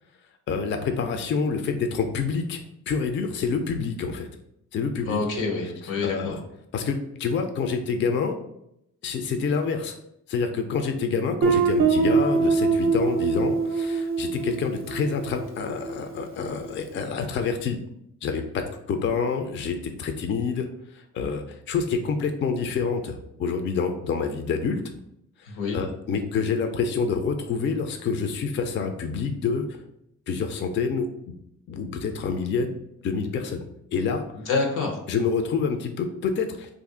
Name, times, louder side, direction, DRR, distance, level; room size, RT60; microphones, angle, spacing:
voice 1, 0.5-2.6 2.9-4.3 4.7-5.2 6.0-6.4 6.7-8.4 9.0-10.0 10.3-17.8 18.2-20.7 20.9-24.8 25.4-29.8 30.3-31.1 31.7-33.6 33.9-34.2 35.1-36.7, left 5 dB, 40° left, 6 dB, 0.4 m, -27 dB
voice 2, 5.1-6.3 25.5-25.8 34.5-35.0, left 4 dB, 85° left, 1 dB, 0.9 m, -27 dB
Guitar, 11.4-16.1, right 5 dB, 45° right, 0.5 m, -24 dB
2.6 x 2.5 x 3.6 m, 0.79 s
cardioid pair, 90°, 30 cm